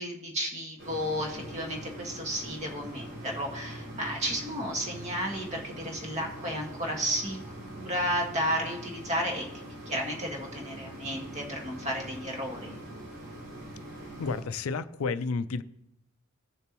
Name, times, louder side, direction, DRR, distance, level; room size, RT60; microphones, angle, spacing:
voice 1, 0.0-9.5 9.8-12.8, equal, 35° right, 1.7 m, -33 dB
sound 1, 0.8-14.4, right 1 dB, 80° right, 4.2 m, -43 dB
voice 2, 14.2-15.6, left 4 dB, 85° left, 0.5 m, -31 dB
16.5 x 6.8 x 3.0 m
head